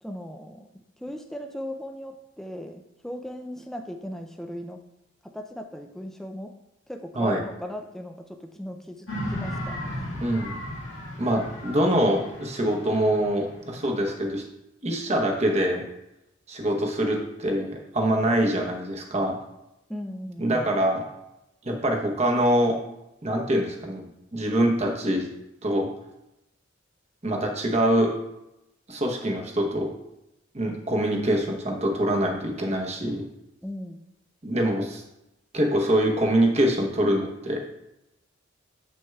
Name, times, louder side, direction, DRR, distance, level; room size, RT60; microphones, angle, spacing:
voice 1, 0.0-4.8 5.2-6.5 6.9-10.2 19.9-20.7 33.6-34.0, equal, ahead, 4 dB, 0.3 m, -38 dB
sound 1, 9.1-14.3, equal, 80° left, 1.7 m, -36 dB
voice 2, 10.2-10.6 11.2-14.4 14.8-15.8 16.5-19.4 20.4-21.1 21.6-22.8 23.2-25.3 25.6-25.9 27.2-28.1 28.9-29.9 30.5-33.2 34.4-35.0 35.5-37.6, right 1 dB, 30° right, 2 dB, 0.8 m, -24 dB
7.7 x 6.2 x 2.3 m, 0.89 s
head